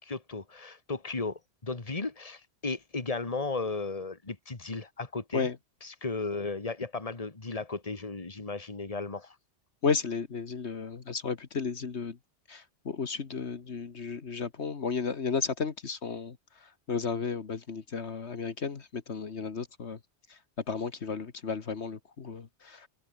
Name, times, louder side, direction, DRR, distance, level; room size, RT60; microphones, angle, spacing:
voice 1, 0.0-5.5 5.8-9.4, left 3 dB, 30° left, 2.1 m, -35 dB
voice 2, 9.8-12.2 12.5-16.4 16.6-20.0 20.3-20.4 20.7-22.9, left 5 dB, 70° left, 1.8 m, -33 dB
omnidirectional pair, 1.2 m